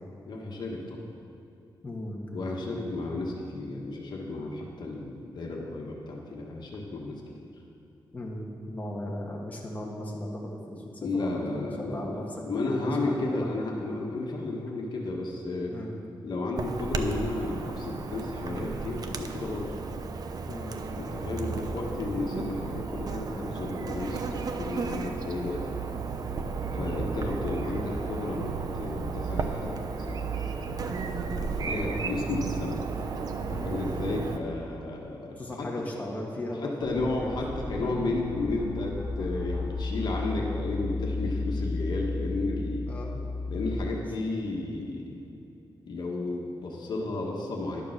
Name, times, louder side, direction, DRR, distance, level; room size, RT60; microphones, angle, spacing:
voice 1, 0.3-1.0 2.3-7.5 11.0-12.2 12.5-15.7 16.2-19.7 20.9-25.8 26.7-32.8 33.5-35.7 36.6-42.9 43.5-45.2 45.9-47.8, left 2 dB, 65° left, -1 dB, 1.3 m, -33 dB
voice 2, 1.8-2.2 8.1-12.2 12.7-13.5 15.7-16.0 20.5-20.8 26.8-27.1 31.6-32.1 33.5-33.8 35.4-37.3 37.8-37.9 42.9-43.2, left 1 dB, 20° left, -2 dB, 1.4 m, -37 dB
Chirp tweet / Buzz, 16.6-34.4, right 4 dB, 50° right, 0.6 m, -33 dB
sound 1, 36.8-43.8, left 3 dB, 20° right, 1.8 m, -33 dB
10.5 x 6.8 x 6.5 m, 2.8 s
wide cardioid pair, 150°, 8 cm